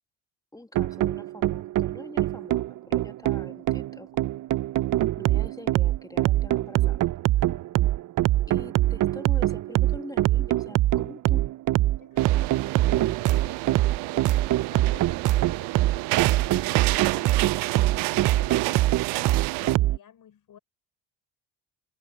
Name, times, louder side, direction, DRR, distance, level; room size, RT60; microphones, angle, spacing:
voice 1, 0.5-4.1 5.2-7.0 8.5-11.4, left 1 dB, 10° left, 2.1 m, -44 dB
sound 1, 0.7-20.0, right 15 dB, 50° right, 0.6 m, -24 dB
voice 2, 12.0-20.6, left 9 dB, 55° left, 6.2 m, -51 dB
sound 2, 12.2-19.8, right 23 dB, 80° right, 0.9 m, -30 dB
hypercardioid pair, 65°, 40 cm